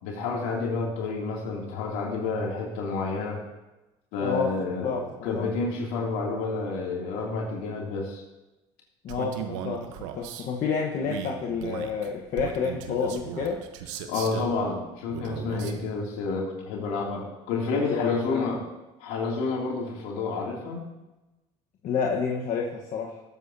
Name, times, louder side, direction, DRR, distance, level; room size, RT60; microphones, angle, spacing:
voice 1, 0.0-3.4 4.1-4.9 5.2-8.2 14.1-18.6 19.0-20.8, left 4 dB, 75° left, -2 dB, 2.7 m, -29 dB
voice 2, 4.2-5.5 9.0-13.7 15.5-15.8 17.7-18.5 21.8-23.2, left 5 dB, 55° left, -1 dB, 1.2 m, -30 dB
Male speech man speaking, 9.1-10.5 11.0-14.6 15.1-15.8, right 9 dB, 85° right, 1.0 m, -37 dB
19.5 x 7.8 x 2.8 m, 1.0 s
supercardioid pair, 85°, 16 cm